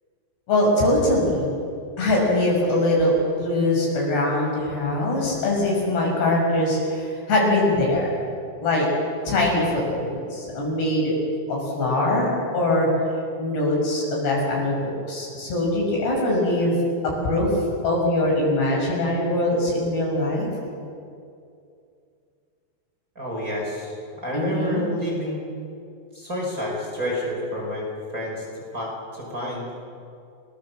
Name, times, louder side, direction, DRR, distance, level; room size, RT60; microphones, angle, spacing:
voice 1, 0.5-1.5 2.0-3.1 3.4-8.1 8.6-8.9 9.3-11.1 11.5-12.9 13.4-14.8 15.1-16.8 17.0-17.5 17.8-20.5 24.3-24.9, left 1 dB, 65° left, -2 dB, 8.3 m, -22 dB
voice 2, 23.2-25.4 26.1-27.9 28.1-29.7, left 1 dB, 20° right, -3 dB, 5.7 m, -29 dB
29.5 x 19.5 x 7.6 m, 2.4 s
omnidirectional pair, 5.2 m